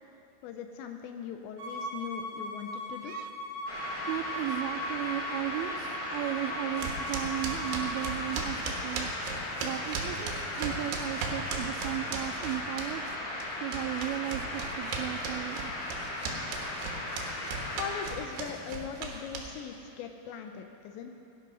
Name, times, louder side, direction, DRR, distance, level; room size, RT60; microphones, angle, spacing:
voice 1, 0.4-3.2 17.8-21.1, left 7 dB, 80° left, 5 dB, 2.7 m, -40 dB
Bowed string instrument, 1.6-8.1, equal, 55° right, 3.1 m, -39 dB
sound 1, 3.7-18.0, left 1 dB, 50° left, 3.6 m, -37 dB
voice 2, 4.1-9.1 9.6-13.2 13.6-15.7, right 15 dB, 90° right, 9 dB, 3.1 m, -35 dB
sound 2, 6.8-13.1 13.4-19.8, right 5 dB, 70° right, 3.2 m, -37 dB
17.5 x 10.5 x 5.5 m, 2.7 s
omnidirectional pair, 5.6 m